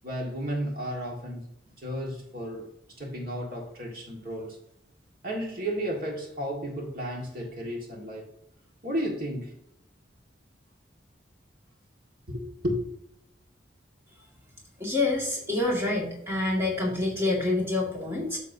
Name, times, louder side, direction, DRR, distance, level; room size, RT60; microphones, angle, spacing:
voice 1, 0.0-1.5 1.8-2.7 3.0-4.6 5.2-8.3 8.8-9.5 12.3-12.8, equal, 50° right, 1.8 m, -33 dB
voice 2, 14.8-18.4, left 2 dB, 15° right, 2.0 m, -27 dB
9.0 x 7.0 x 2.7 m
head